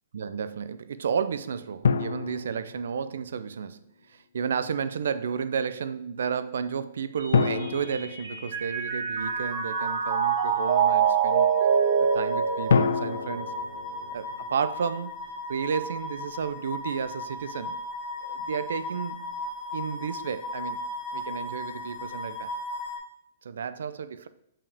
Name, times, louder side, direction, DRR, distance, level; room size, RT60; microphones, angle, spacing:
voice 1, 0.1-3.8 4.1-11.5 12.0-13.5 14.1-15.2 15.5-17.8 18.2-19.4 19.7-20.8 21.1-22.5 23.4-24.3, right 6 dB, 80° right, 0.5 m, -32 dB
sound 1, 1.8-3.5 7.3-9.2 12.7-15.0, left 6 dB, 85° left, 0.4 m, -28 dB
Mallet percussion, 7.2-13.6, right 7 dB, 45° right, 2.1 m, -26 dB
sound 2, 9.2-23.0, left 2 dB, 40° left, 1.6 m, -37 dB
7.1 x 5.7 x 3.5 m
hypercardioid pair, 170°, 0 cm